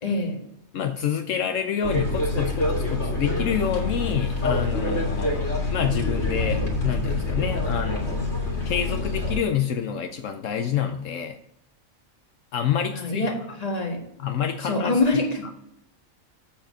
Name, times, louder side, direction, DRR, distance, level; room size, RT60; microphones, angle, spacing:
voice 1, 0.0-0.4 12.9-14.0 14.6-15.5, left 2 dB, 30° left, 1 dB, 1.6 m, -25 dB
voice 2, 0.7-8.3 8.6-11.4 12.5-13.3 14.2-15.2, left 8 dB, 75° left, 6 dB, 1.0 m, -27 dB
sound 1, 1.8-9.4, left 2 dB, 55° left, 2.4 m, -26 dB
7.6 x 6.8 x 5.3 m, 0.77 s
omnidirectional pair, 1.4 m